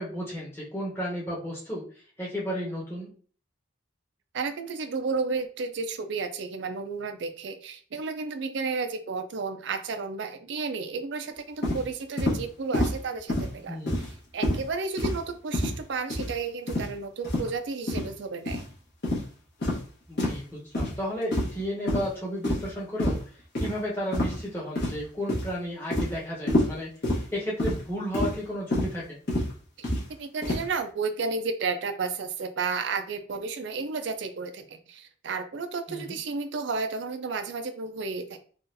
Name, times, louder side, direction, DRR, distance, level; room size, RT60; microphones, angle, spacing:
voice 1, 0.0-1.8 2.2-3.1 13.7-14.0 20.1-23.2 23.6-26.9 27.3-29.2 35.9-36.2, equal, 10° left, -6 dB, 1.0 m, -33 dB
voice 2, 4.3-13.8 14.3-18.6 29.8-29.9 30.2-38.4, right 4 dB, 60° right, 8 dB, 0.4 m, -32 dB
sound 1, 11.6-11.8 12.2-12.4 12.7-13.0 13.3-13.5 13.9-14.1 14.4-14.6 15.0-15.2 15.5-15.8 16.1-16.3 16.7-16.9 17.2-17.5 17.9-18.1 18.5-18.6 19.0-19.2 19.6-19.8 20.2-20.4 20.7-20.9 21.3-21.6 21.9-22.1 22.4-22.7 23.0-23.2 23.6-23.7 24.1-24.4 24.8-25.0 25.3-25.5 25.9-26.1 26.5-26.7 27.0-27.2 27.6-27.8 28.1-28.4 28.7-28.9 29.3-29.5 29.8-30.0 30.4-30.6, left 1 dB, 55° left, 1.3 m, -27 dB
3.8 x 2.4 x 2.6 m, 0.42 s
head